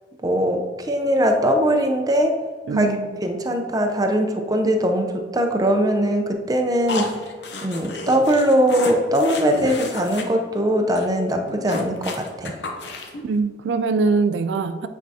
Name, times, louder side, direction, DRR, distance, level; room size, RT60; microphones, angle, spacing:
voice 1, 0.2-2.4 2.7-2.9 3.2-7.2 7.6-12.6, equal, 20° right, 4 dB, 0.5 m, -21 dB
voice 2, 2.7-3.2 13.2-14.9, right 4 dB, 80° right, 9 dB, 0.3 m, -22 dB
sound 1, 6.9-10.2 10.5-10.7 10.9-11.1 11.3-13.3, left 2 dB, 75° left, 0.7 m, -32 dB
8.4 x 4.6 x 2.7 m, 1.5 s
head